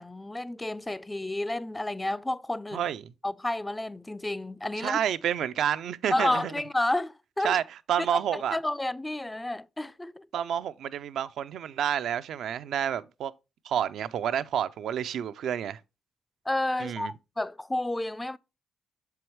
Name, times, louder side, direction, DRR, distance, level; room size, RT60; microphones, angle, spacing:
voice 1, 0.0-2.8 3.2-5.0 6.1-7.6 8.3-10.3 16.5-18.4, left 1 dB, 15° left, 0.3 m, -31 dB
voice 2, 2.7-3.1 4.8-6.5 7.4-8.6 10.3-13.3 13.6-15.8 16.8-17.1, right 9 dB, 75° right, 0.3 m, -29 dB
6.9 x 4.6 x 3.0 m
supercardioid pair, 65°, 0 cm